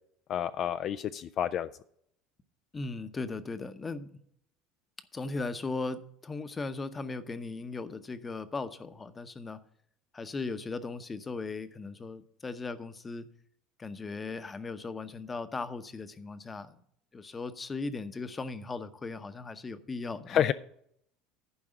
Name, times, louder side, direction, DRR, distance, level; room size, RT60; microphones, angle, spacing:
voice 1, 0.3-1.7 20.3-20.5, left 10 dB, 50° left, 0.4 m, -29 dB
voice 2, 2.7-4.1 5.1-9.6 10.1-13.3 13.8-16.8 17.1-20.4, left 3 dB, 20° left, 0.8 m, -37 dB
11.0 x 4.7 x 7.8 m
supercardioid pair, 105°, 0 cm